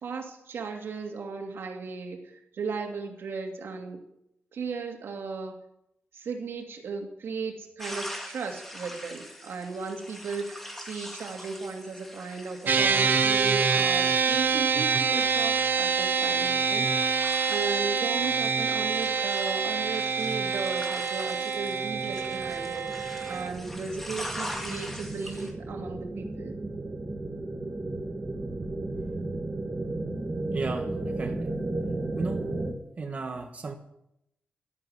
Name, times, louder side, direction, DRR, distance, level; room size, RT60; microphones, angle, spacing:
voice 1, 0.0-4.0 4.5-5.6 6.1-17.2 17.5-26.6, right 4 dB, 80° right, 3 dB, 2.4 m, -36 dB
sound 1, 7.8-25.5, equal, 5° left, 2.4 m, -43 dB
sound 2, 12.7-23.5, right 5 dB, 55° right, 0.9 m, -26 dB
sound 3, 21.9-32.7, right 2 dB, 20° right, 1.7 m, -34 dB
voice 2, 30.5-31.6 32.1-32.5 33.0-33.7, right 4 dB, 35° right, 3 dB, 1.4 m, -35 dB
12.5 x 11.0 x 7.9 m, 0.80 s
wide cardioid pair, 170°, 4 cm